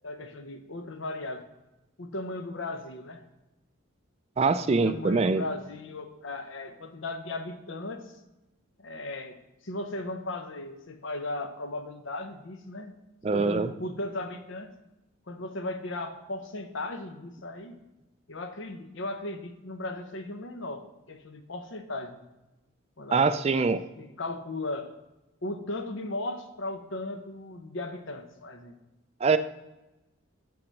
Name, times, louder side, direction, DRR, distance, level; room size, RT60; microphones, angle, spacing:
voice 1, 0.0-1.5 2.0-3.2 4.8-8.1 8.8-9.4 9.6-13.0 13.3-14.7 15.3-17.8 18.3-22.2 23.0-23.3 24.0-24.9 25.4-28.8, left 2 dB, 70° left, 8 dB, 0.8 m, -36 dB
voice 2, 4.4-5.4 13.2-13.7 23.1-23.9 29.2-29.4, right 4 dB, 30° right, 12 dB, 0.3 m, -23 dB
7.2 x 5.8 x 6.4 m, 0.99 s
head